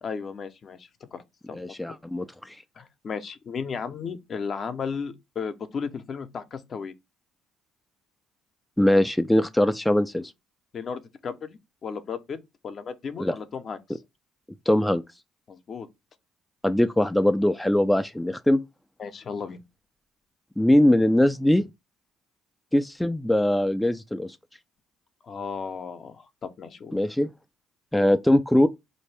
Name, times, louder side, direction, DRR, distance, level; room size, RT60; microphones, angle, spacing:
voice 1, 0.0-1.2 1.5-2.0 2.8-6.9 10.7-12.4 12.6-14.0 15.5-15.9 19.0-19.6 25.2-27.0, left 6 dB, 45° left, 0.6 m, -35 dB
voice 2, 1.5-2.6 8.8-10.3 13.2-13.3 14.7-15.0 16.6-18.6 20.6-21.6 22.7-24.4 26.9-27.3 27.9-28.7, left 1 dB, 5° left, 0.3 m, -21 dB
4.0 x 2.6 x 3.3 m
supercardioid pair, 85°, 0 cm